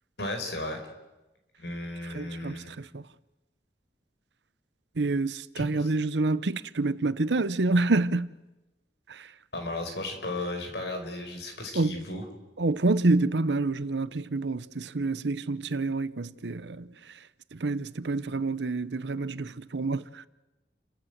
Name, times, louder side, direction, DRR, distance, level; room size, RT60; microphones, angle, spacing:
voice 1, 0.2-0.8 1.6-2.8 5.5-5.9 9.5-12.2, left 1 dB, 75° left, 5.0 m, -35 dB
voice 2, 2.1-3.0 5.0-8.3 11.7-12.0 12.6-16.9 17.5-20.3, right 2 dB, 85° right, 0.8 m, -27 dB
30.0 x 14.0 x 8.0 m
head